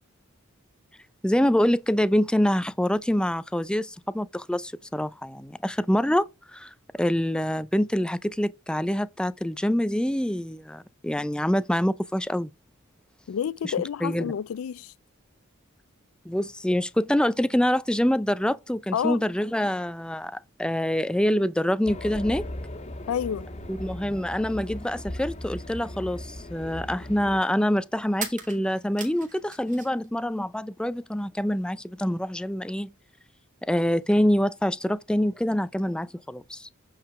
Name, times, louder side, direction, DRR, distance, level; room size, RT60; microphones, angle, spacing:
voice 1, 1.2-12.5 13.6-13.7 14.0-14.3 16.3-22.5 23.7-32.9 33.7-36.7, equal, 5° left, 0.4 m, -25 dB
voice 2, 13.3-14.9 18.9-19.2 23.1-23.5, left 8 dB, 80° left, 0.4 m, -29 dB
Race car auto racing, 21.8-27.4, left 1 dB, 30° left, 1.5 m, -38 dB
sound 1, 28.2-30.1 30.4-31.2, right 6 dB, 40° right, 2.3 m, -39 dB
9.0 x 4.9 x 4.8 m
head